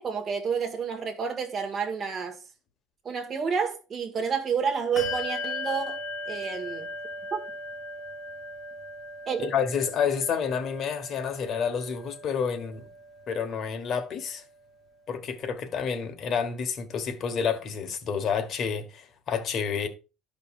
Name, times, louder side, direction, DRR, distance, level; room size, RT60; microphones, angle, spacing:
voice 1, 0.0-2.4 3.0-6.9 7.3-7.4 9.3-9.5, right 6 dB, 35° right, 1.5 m, -30 dB
Bell, 5.0-14.9, left 2 dB, 15° left, 2.8 m, -39 dB
voice 2, 9.4-12.9 13.3-14.4 15.1-19.9, left 6 dB, 45° left, 1.2 m, -29 dB
12.5 x 5.2 x 2.4 m
cardioid pair, 145°, 0 cm